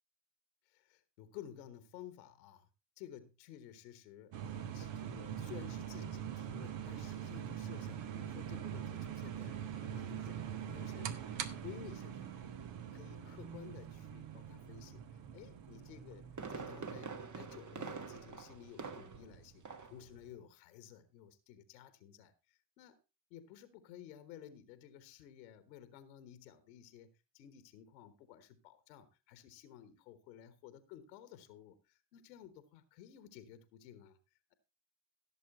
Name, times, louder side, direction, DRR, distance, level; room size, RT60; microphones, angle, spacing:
voice 1, 0.7-2.7 3.0-12.5 12.8-23.0 23.3-34.2, left 10 dB, 85° left, 12 dB, 1.3 m, -54 dB
sound 1, 4.3-20.3, right 9 dB, 60° right, 1.3 m, -44 dB
Fireworks, 15.9-19.3 19.6-20.0 20.3-20.4, right 5 dB, 35° right, 1.6 m, -45 dB
16.0 x 7.1 x 4.1 m, 0.28 s
hypercardioid pair, 45°, 49 cm